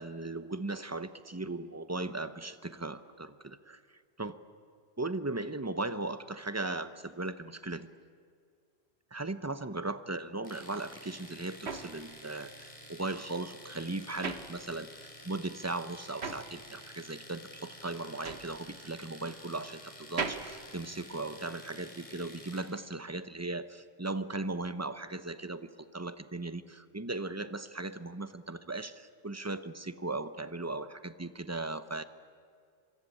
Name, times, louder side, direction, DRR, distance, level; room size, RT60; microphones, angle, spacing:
voice 1, 0.0-3.8 4.2-4.4 5.0-7.9 9.1-32.0, right 2 dB, 15° right, 11 dB, 0.9 m, -38 dB
Domestic sounds home sounds, 10.4-22.8, left 1 dB, 30° left, 3.9 m, -51 dB
sound 1, 10.9-15.2 15.5-21.7, right 4 dB, 75° right, 1.8 m, -41 dB
26.5 x 23.5 x 8.6 m, 2.2 s
omnidirectional pair, 1.1 m